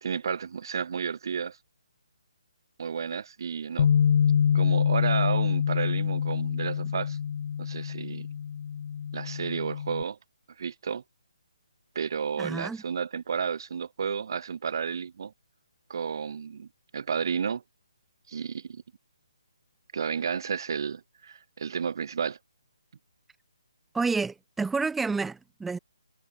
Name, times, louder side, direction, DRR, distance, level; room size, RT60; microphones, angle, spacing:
voice 1, 0.0-1.6 2.8-3.9 4.5-7.2 7.6-8.3 9.1-10.2 10.6-11.0 12.0-15.3 15.9-16.7 16.9-17.6 18.3-18.8 19.9-22.4, right 6 dB, 50° right, 2.3 m, -32 dB
Bass guitar, 3.8-10.0, left 8 dB, 45° left, 0.8 m, -26 dB
voice 2, 12.4-12.8 23.9-25.8, right 4 dB, 5° right, 0.9 m, -29 dB
figure-of-eight pair, 140°, 3 cm